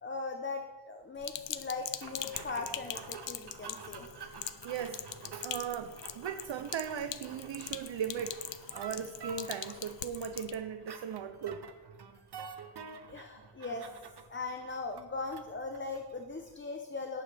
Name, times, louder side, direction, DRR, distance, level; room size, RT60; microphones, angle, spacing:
voice 1, 0.0-4.1 13.1-13.9 14.3-17.2, left 3 dB, 25° left, 5 dB, 0.7 m, -39 dB
Sink (filling or washing), 1.2-10.5, left 10 dB, 80° left, 0.7 m, -43 dB
sound 1, 2.0-16.6, right 6 dB, 65° right, 0.9 m, -49 dB
voice 2, 4.2-5.0 5.3-11.7, right 7 dB, 90° right, 8 dB, 0.6 m, -38 dB
18.0 x 8.8 x 3.4 m, 1.3 s
wide cardioid pair, 135°, 44 cm